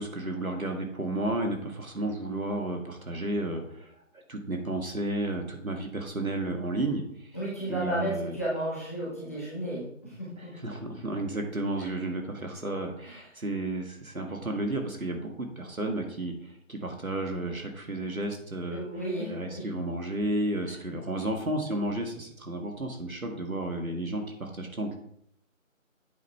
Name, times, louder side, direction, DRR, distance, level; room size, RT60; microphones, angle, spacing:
voice 1, 0.0-3.9 4.3-7.3 7.7-8.3 10.4-16.3 16.7-18.8 19.3-24.9, right 1 dB, 80° right, 3 dB, 2.0 m, -32 dB
voice 2, 7.3-10.6 11.8-11.9 13.0-13.2 18.7-19.7 20.6-20.7, right 1 dB, 10° left, -9 dB, 1.2 m, -33 dB
8.3 x 5.3 x 4.4 m, 0.71 s
figure-of-eight pair, 165°, 41 cm